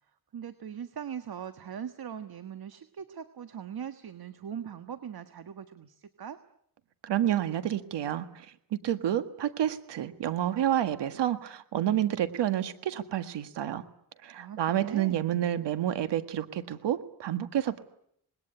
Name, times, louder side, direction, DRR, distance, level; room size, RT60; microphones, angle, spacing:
voice 1, 0.3-6.4 14.4-15.3, right 8 dB, 60° right, 11 dB, 1.6 m, -40 dB
voice 2, 7.0-8.5 8.7-13.8 14.2-17.8, right 11 dB, 90° right, 11 dB, 1.7 m, -29 dB
26.5 x 20.5 x 10.0 m, 0.72 s
cardioid pair, 65°, 41 cm